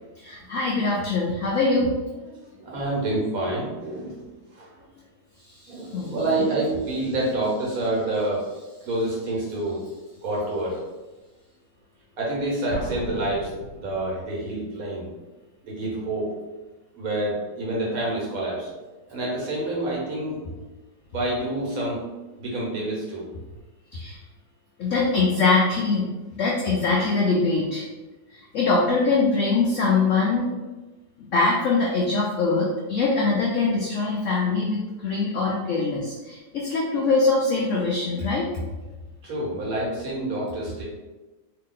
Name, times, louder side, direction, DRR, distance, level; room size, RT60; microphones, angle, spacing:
voice 1, 0.2-1.9 5.6-6.5 23.9-24.2 24.8-26.1 26.3-27.9 28.3-30.5 31.3-38.5, left 3 dB, 80° left, -3 dB, 0.6 m, -23 dB
voice 2, 2.6-4.2 4.6-4.9 5.7-8.5 8.8-9.9 10.2-10.8 12.2-15.1 15.6-16.4 16.9-18.7 19.1-20.5 21.1-22.1 22.4-23.3 39.2-40.8, right 2 dB, 55° right, -5 dB, 1.3 m, -28 dB
Explosion, 12.7-14.3, equal, 50° left, 1.1 m, -36 dB
2.8 x 2.8 x 3.8 m, 1.1 s
omnidirectional pair, 1.9 m